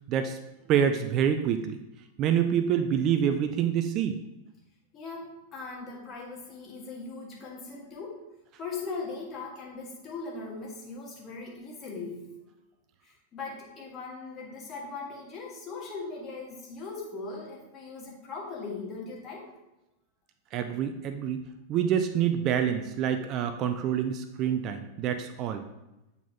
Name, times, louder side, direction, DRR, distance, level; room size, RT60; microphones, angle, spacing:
voice 1, 0.7-1.8 2.2-4.2 20.5-21.4 21.7-25.6, right 8 dB, 35° right, 8 dB, 0.4 m, -26 dB
voice 2, 4.9-8.2 8.6-12.2 13.0-19.5, left 4 dB, 30° left, -2 dB, 1.6 m, -39 dB
8.1 x 4.1 x 2.9 m, 0.96 s
figure-of-eight pair, 90°, 0 cm